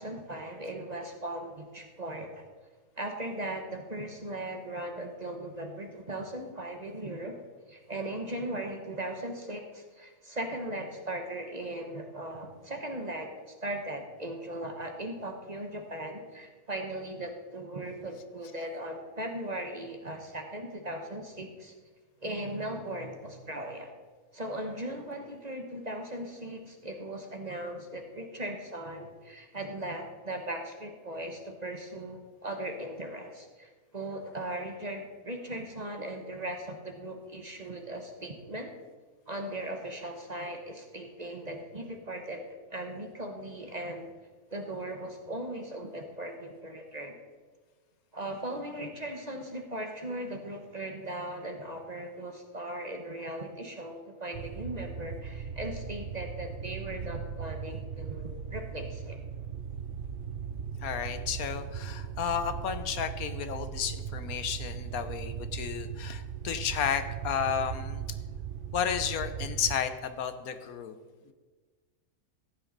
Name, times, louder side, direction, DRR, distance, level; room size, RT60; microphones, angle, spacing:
voice 1, 0.0-2.5 3.0-7.3 7.7-21.7 22.2-23.9 24.3-38.7 39.3-42.4 42.7-44.1 44.5-47.2 48.1-59.2 64.3-64.4, right 1 dB, 30° right, 4 dB, 1.1 m, -38 dB
sound 1, 54.3-69.8, right 8 dB, 65° right, 0.5 m, -38 dB
voice 2, 60.8-68.0 68.7-70.9 71.3-71.4, left 8 dB, 75° left, 10 dB, 1.3 m, -32 dB
14.5 x 9.1 x 4.0 m, 1.4 s
omnidirectional pair, 1.5 m